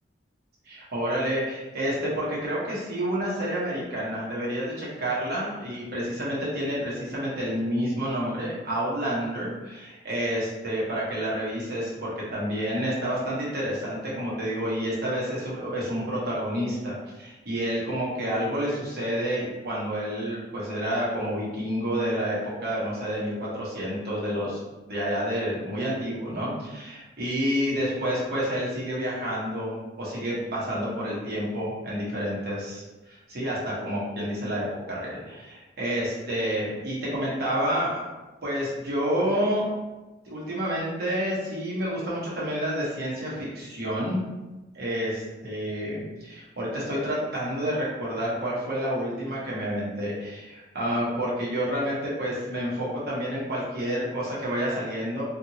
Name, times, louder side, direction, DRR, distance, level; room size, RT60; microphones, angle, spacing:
voice 1, 0.6-24.6 24.9-38.1 38.4-39.7 40.2-44.2 44.7-55.2, equal, 55° right, -7 dB, 1.1 m, -29 dB
2.8 x 2.5 x 2.8 m, 1.1 s
head